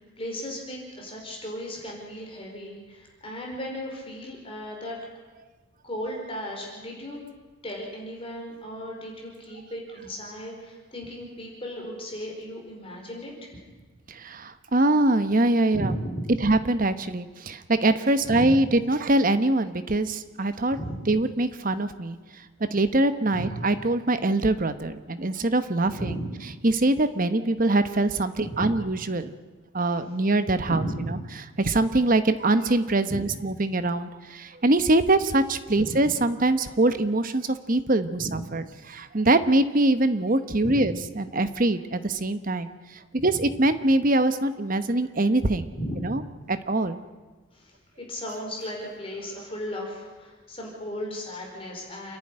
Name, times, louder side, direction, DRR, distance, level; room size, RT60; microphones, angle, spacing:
voice 1, 0.2-5.0 5.8-7.2 7.6-13.5 15.7-16.3 18.2-18.6 20.7-21.0 23.3-23.7 25.9-26.3 28.4-28.7 30.7-31.2 33.1-33.2 35.8-36.1 38.2-38.4 40.6-40.9 43.2-43.3 45.7-46.1 47.5-47.7 48.0-52.2, equal, 25° left, -1 dB, 4.8 m, -35 dB
voice 2, 14.1-15.9 16.4-20.8 21.1-22.2 22.6-26.1 26.6-29.3 29.7-31.2 31.6-45.7 46.0-46.2 46.5-47.0, right 2 dB, 40° right, 11 dB, 1.0 m, -23 dB
28.0 x 11.0 x 9.9 m, 1.3 s
head